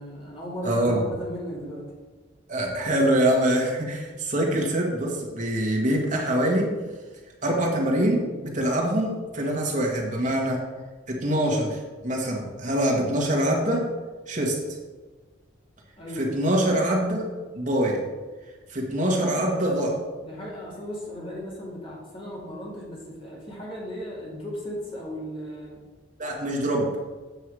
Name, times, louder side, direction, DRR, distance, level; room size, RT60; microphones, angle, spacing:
voice 1, 0.0-1.9 16.0-16.3 19.0-19.7 20.2-25.8, equal, 30° left, -5 dB, 2.5 m, -36 dB
voice 2, 0.6-1.0 2.5-6.7 7.4-10.6 11.1-13.8 14.3-14.5 16.2-17.2 17.5-18.0 18.7-19.9 26.2-26.9, right 1 dB, 40° right, -1 dB, 1.6 m, -24 dB
8.3 x 5.7 x 4.8 m, 1.3 s
head